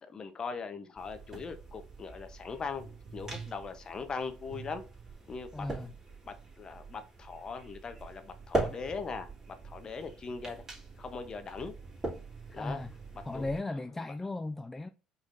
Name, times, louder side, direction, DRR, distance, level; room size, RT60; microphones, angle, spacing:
voice 1, 0.0-4.8 5.3-5.7 6.2-10.6 11.0-11.7 12.5-12.8 13.3-13.5, left 5 dB, 35° left, 0.9 m, -40 dB
sound 1, 1.0-13.6, right 2 dB, 25° right, 2.6 m, -41 dB
voice 2, 5.5-5.9 12.5-12.9 13.3-14.9, left 2 dB, 15° left, 0.3 m, -36 dB
5.0 x 4.0 x 2.6 m
supercardioid pair, 90°, 2 cm